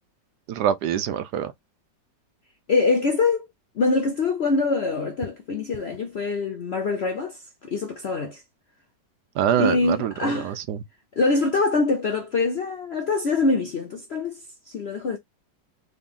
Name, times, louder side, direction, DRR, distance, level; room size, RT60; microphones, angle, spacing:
voice 1, 0.5-1.5 9.4-10.8, right 9 dB, 75° right, 1.1 m, -25 dB
voice 2, 2.7-3.5 3.8-7.4 7.7-8.4 9.6-10.6 11.2-14.4 14.7-15.2, left 3 dB, 60° left, 0.6 m, -24 dB
3.9 x 3.2 x 3.6 m
omnidirectional pair, 1.9 m